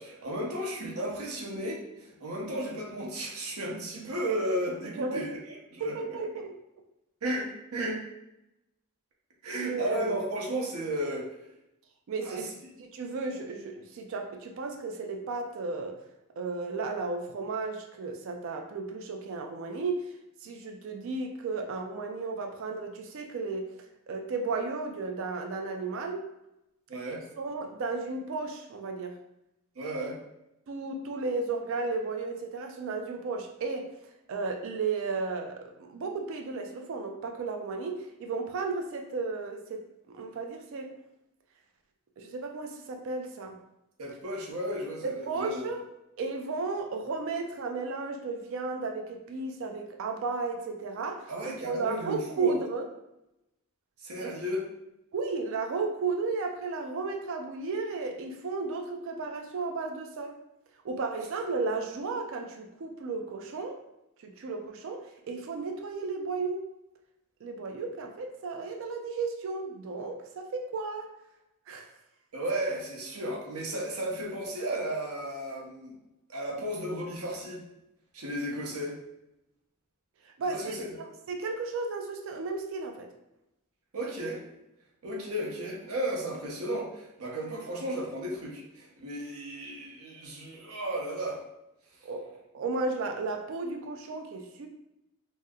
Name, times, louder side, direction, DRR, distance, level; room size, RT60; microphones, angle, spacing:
voice 1, 0.0-6.2 7.2-8.1 9.4-11.3 12.2-12.5 26.9-27.2 29.8-30.2 44.0-45.7 51.3-52.5 54.0-54.6 72.3-76.0 76.3-77.6 78.1-79.0 80.5-81.0 83.9-84.4 85.0-91.4, right 1 dB, 80° right, -2 dB, 0.8 m, -34 dB
voice 2, 5.8-6.5 9.5-10.1 12.1-12.5 12.8-16.0 16.4-20.0 20.4-23.7 24.1-26.2 27.1-29.1 30.7-33.9 34.3-39.8 40.1-40.9 42.2-43.6 45.0-45.8 46.2-52.8 54.2-54.3 55.1-60.4 60.8-63.8 64.2-66.6 67.4-71.1 71.7-71.9 80.4-80.7 81.3-83.1 92.0-92.2 92.5-94.7, right 4 dB, 60° right, 4 dB, 0.4 m, -34 dB
2.7 x 2.1 x 3.5 m, 0.88 s
head